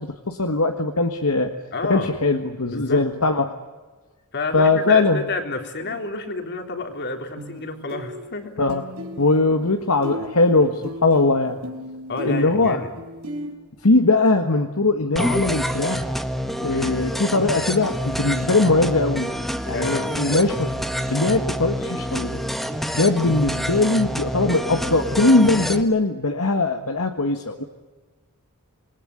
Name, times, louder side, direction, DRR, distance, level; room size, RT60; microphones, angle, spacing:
voice 1, 0.0-1.5 1.9-3.5 4.5-5.2 8.6-8.8 9.2-11.6 12.2-12.8 13.8-16.1 16.6-19.3 19.7-20.7 21.1-22.4 22.9-27.6, left 3 dB, 70° left, 5 dB, 1.7 m, -20 dB
voice 2, 1.7-2.2 2.7-3.0 4.3-8.6 12.1-12.9 16.7-17.1 19.7-20.2, left 3 dB, 50° left, 5 dB, 3.7 m, -30 dB
sound 1, 5.8-6.0 7.4-7.6 7.9-9.7 10.0-13.5, left 1 dB, 70° right, 4.4 m, -35 dB
sound 2, 15.2-25.8, equal, ahead, 1.4 m, -27 dB
27.5 x 20.5 x 9.9 m, 1.3 s
head